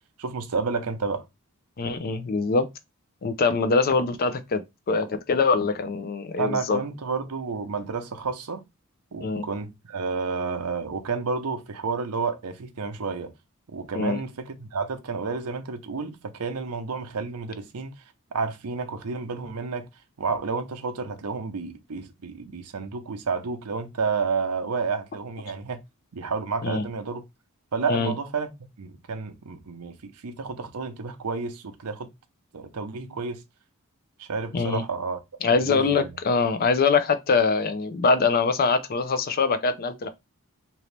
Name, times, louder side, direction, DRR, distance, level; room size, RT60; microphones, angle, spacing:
voice 1, 0.2-1.2 6.4-8.6 9.1-13.3 13.7-18.0 18.3-19.9 20.2-25.8 26.1-27.2 27.7-28.5 28.8-32.1 32.5-33.4 34.2-35.2 35.5-36.1, right 4 dB, 85° right, 0.6 m, -30 dB
voice 2, 1.8-2.7 3.2-6.8 9.2-9.5 13.9-14.2 26.6-26.8 27.9-28.1 34.5-34.8 35.4-40.1, left 4 dB, 45° left, 0.4 m, -23 dB
2.9 x 2.7 x 3.2 m
head